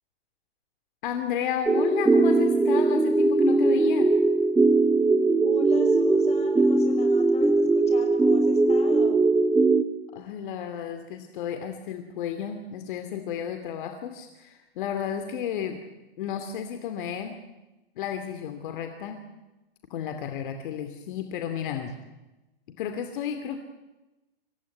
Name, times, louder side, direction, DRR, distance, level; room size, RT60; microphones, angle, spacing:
voice 1, 1.0-4.1 10.1-15.8 16.2-17.4 18.0-19.2 19.9-22.0 22.8-23.6, left 8 dB, 55° left, 7 dB, 2.6 m, -32 dB
sound 1, 1.7-9.8, right 3 dB, 5° right, 1.0 m, -20 dB
voice 2, 5.4-9.3, left 5 dB, 20° left, 4 dB, 6.4 m, -42 dB
26.0 x 16.5 x 9.5 m, 1.0 s
hypercardioid pair, 130°, 31 cm